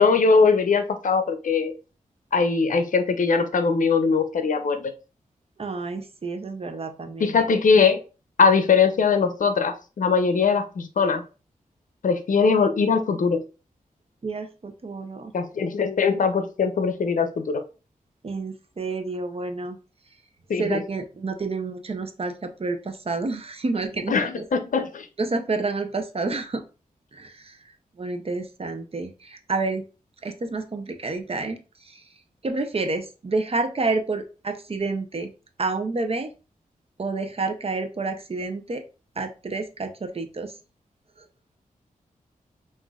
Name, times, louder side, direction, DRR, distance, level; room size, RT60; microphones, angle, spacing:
voice 1, 0.0-1.7 2.3-4.9 7.2-8.0 8.4-11.2 12.0-13.4 15.3-17.6 20.5-20.8 24.1-25.1, left 5 dB, 65° left, 8 dB, 0.6 m, -21 dB
voice 2, 5.6-7.4 14.2-15.3 18.2-19.8 20.6-24.4 25.2-26.6 27.1-27.6 28.0-29.8 30.2-32.0 32.4-35.3 35.6-36.3 37.0-38.8 39.2-40.5, right 3 dB, 45° right, 7 dB, 0.7 m, -29 dB
5.9 x 2.6 x 2.3 m, 0.33 s
cardioid pair, 60°, 14 cm